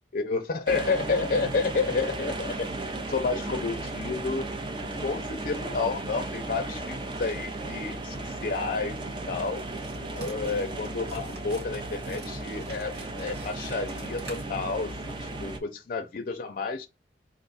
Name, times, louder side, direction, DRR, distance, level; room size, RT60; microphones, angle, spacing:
voice 1, 0.1-4.4 5.0-9.0 9.3-9.6 10.0-16.9, left 4 dB, 50° left, 0.5 m, -30 dB
sound 1, 0.7-15.6, right 2 dB, 30° right, 0.6 m, -35 dB
sound 2, 9.5-15.1, right 2 dB, 75° right, 2.2 m, -46 dB
3.7 x 2.3 x 4.0 m
head